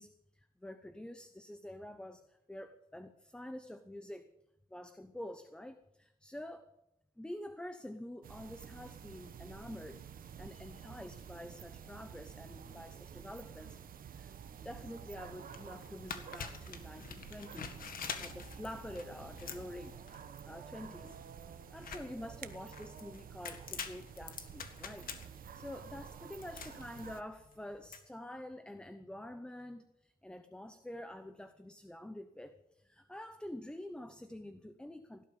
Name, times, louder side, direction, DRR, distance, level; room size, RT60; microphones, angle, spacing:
voice 1, 0.0-4.3 4.7-6.7 7.2-14.3 14.6-19.9 20.4-21.2 21.7-35.2, left 1 dB, 5° left, 10 dB, 0.8 m, -47 dB
sound 1, 8.2-27.2, right 8 dB, 65° right, 1.1 m, -50 dB
sound 2, 15.4-28.0, left 6 dB, 65° left, 1.9 m, -47 dB
17.5 x 12.0 x 5.3 m, 0.90 s
wide cardioid pair, 150°, 16 cm